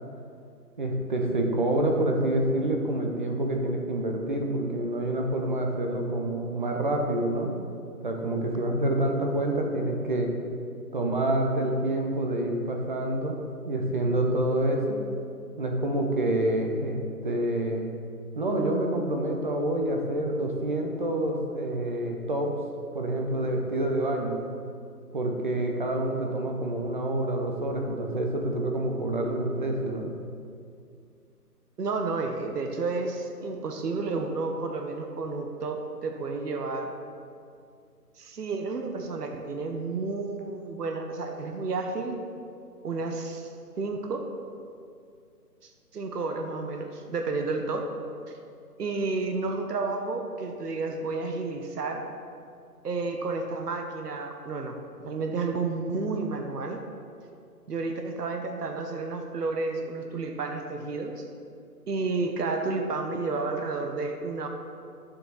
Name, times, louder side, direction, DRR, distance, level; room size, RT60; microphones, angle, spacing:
voice 1, 0.8-7.5 8.0-10.3 10.9-15.0 15.6-17.8 18.3-22.5 22.9-24.4 25.1-30.1, right 1 dB, 30° right, 2 dB, 0.8 m, -27 dB
voice 2, 31.8-36.9 38.2-42.2 42.8-43.5 43.8-44.2 45.6-47.9 48.8-52.0 52.8-54.8 55.0-56.8 57.7-61.2 61.9-64.5, right 3 dB, 70° right, 4 dB, 1.1 m, -31 dB
9.9 x 7.1 x 4.0 m, 2.4 s
hypercardioid pair, 160°, 48 cm